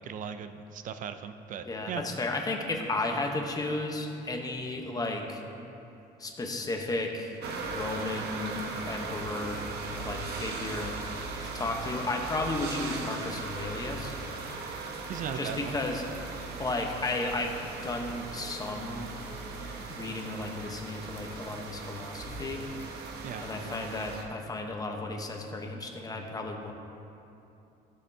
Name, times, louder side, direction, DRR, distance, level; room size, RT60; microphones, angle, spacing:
voice 1, 0.0-2.0 15.1-15.8 23.2-23.5, right 7 dB, 50° right, 10 dB, 0.5 m, -38 dB
voice 2, 1.6-5.4 6.2-9.6 10.0-10.9 11.5-14.2 15.3-16.0 16.6-19.2 19.9-22.6 23.4-26.7, left 2 dB, 20° left, 2 dB, 1.0 m, -34 dB
sound 1, 7.4-24.2, right 4 dB, 75° right, 1.0 m, -38 dB
13.0 x 6.8 x 2.8 m, 2.7 s
cardioid pair, 110°, 17 cm